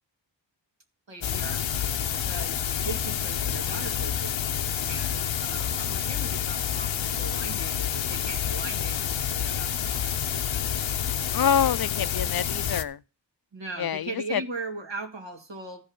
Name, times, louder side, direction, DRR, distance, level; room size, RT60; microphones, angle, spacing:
voice 1, 1.1-1.6 2.2-4.4 4.8-10.7 13.5-15.8, right 3 dB, 75° right, 2.2 m, -39 dB
sound 1, 1.2-12.8, left 9 dB, 90° left, 0.8 m, -28 dB
voice 2, 11.3-13.0 13.8-14.4, left 8 dB, 55° left, 0.5 m, -26 dB
13.0 x 5.3 x 7.1 m
cardioid pair, 45°, 45 cm